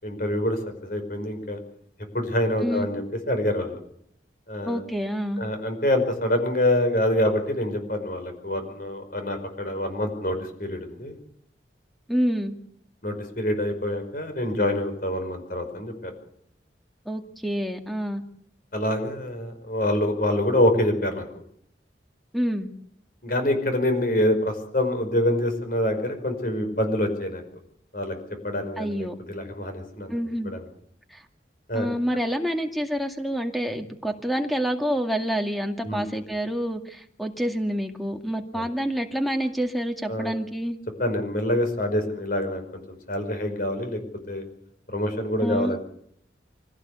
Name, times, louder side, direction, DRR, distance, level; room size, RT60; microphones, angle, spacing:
voice 1, 0.0-1.6 2.1-3.8 4.5-4.8 5.4-11.2 13.0-16.1 18.7-21.3 23.2-27.4 27.9-28.2 28.4-30.2 30.4-30.6 31.7-31.9 35.8-36.1 38.5-38.7 40.1-40.4 41.0-44.0 44.3-44.4 44.9-45.8, left 1 dB, 50° left, 7 dB, 5.3 m, -26 dB
voice 2, 4.7-5.4 12.1-12.6 17.1-18.2 22.3-22.7 28.8-29.1 30.1-30.5 31.1-31.2 31.7-40.8 45.4-45.8, equal, ahead, 5 dB, 2.2 m, -27 dB
24.5 x 17.0 x 8.4 m, 0.69 s
head